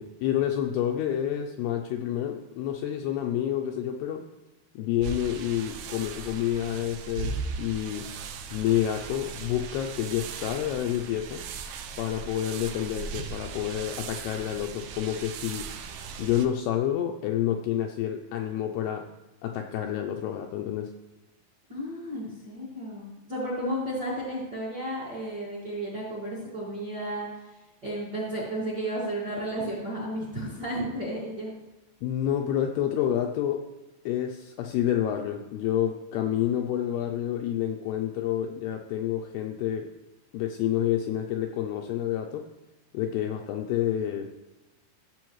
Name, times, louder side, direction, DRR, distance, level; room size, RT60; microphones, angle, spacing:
voice 1, 0.0-4.3 4.8-8.1 8.5-11.4 12.0-15.7 16.2-19.1 19.4-20.9 32.0-33.7 34.1-39.9 40.3-42.4 42.9-44.3, left 11 dB, 85° left, 3 dB, 2.4 m, -29 dB
sound 1, 5.0-16.5, right 5 dB, 80° right, 2.2 m, -38 dB
voice 2, 21.7-27.3 27.8-31.5, right 1 dB, 40° right, -6 dB, 1.5 m, -33 dB
14.5 x 7.2 x 3.1 m, 1.0 s
omnidirectional pair, 5.1 m